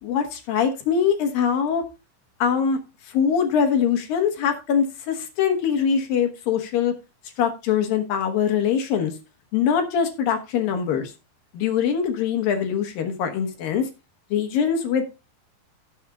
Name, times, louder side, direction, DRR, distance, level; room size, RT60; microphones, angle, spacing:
voice 1, 0.0-1.8 2.4-2.8 3.1-6.9 7.4-9.1 9.5-11.1 11.5-13.9 14.3-15.0, left 7 dB, 65° left, 5 dB, 2.6 m, -23 dB
17.0 x 7.2 x 2.4 m, 0.28 s
omnidirectional pair, 5.0 m